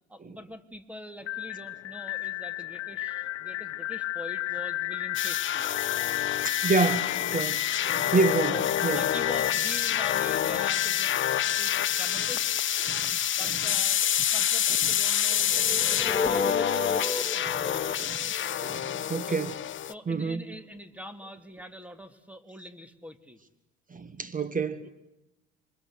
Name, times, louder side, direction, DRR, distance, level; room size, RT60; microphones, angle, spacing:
voice 1, 0.1-5.7 7.9-8.2 8.5-8.7 8.9-12.5 13.3-14.0 14.3-18.2 19.3-19.4 19.9-23.4, equal, 5° right, 2.8 m, -44 dB
sound 1, 1.2-13.1, left 16 dB, 75° left, 1.1 m, -33 dB
sound 2, 5.1-19.9, left 10 dB, 35° left, 0.9 m, -28 dB
voice 2, 6.4-9.0 12.8-13.2 13.4-13.6 14.8-14.9 17.4-17.6 18.0-18.1 18.6-19.6 20.1-20.4 23.9-24.9, right 3 dB, 25° right, 1.9 m, -29 dB
sound 3, 15.3-19.4, left 3 dB, 10° left, 2.7 m, -33 dB
28.0 x 24.5 x 8.1 m
hypercardioid pair, 65°, 33 cm